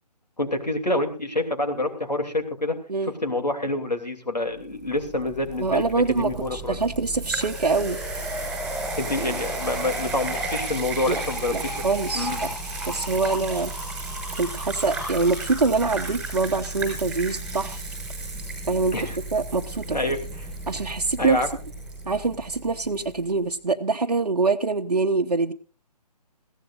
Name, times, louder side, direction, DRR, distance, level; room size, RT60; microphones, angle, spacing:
voice 1, 0.4-2.8 3.1-6.8 9.0-11.7 12.1-12.4 18.9-19.2 19.9-20.2 21.2-21.5, left 1 dB, 80° left, 5 dB, 2.9 m, -27 dB
sound 1, 5.0-23.0, right 2 dB, ahead, 5.4 m, -33 dB
voice 2, 5.6-8.0 11.0-11.2 11.5-12.5 12.9-13.7 14.4-17.8 18.7-19.0 19.3-20.0 20.7-21.4 22.1-25.5, right 3 dB, 65° right, 2 dB, 0.9 m, -24 dB
22.0 x 15.5 x 2.5 m, 0.36 s
figure-of-eight pair, 145°, 21 cm